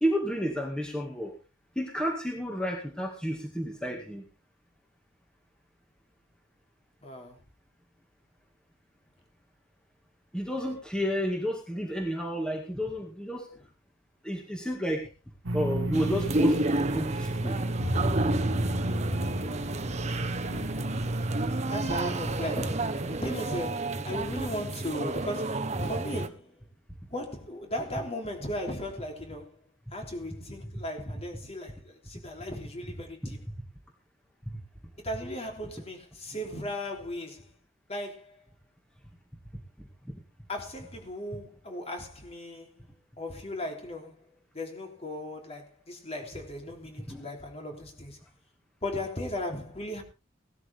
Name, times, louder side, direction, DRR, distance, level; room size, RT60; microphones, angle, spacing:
voice 1, 0.0-1.3 1.8-4.2 10.3-13.5 14.2-15.1 15.5-16.6 16.9-17.6 47.1-47.3, equal, 5° left, 2.1 m, -31 dB
voice 2, 7.0-7.4 20.4-20.8 21.7-26.5 27.1-29.6 29.9-33.4 35.0-37.5 37.9-38.4 40.5-42.8 43.2-44.2 44.5-48.2 48.8-50.0, left 1 dB, 35° left, 3.5 m, -37 dB
sound 1, 15.4-23.4, right 1 dB, 80° right, 1.8 m, -32 dB
sound 2, 15.9-26.3, right 2 dB, 35° right, 1.1 m, -31 dB
17.5 x 13.0 x 3.6 m
head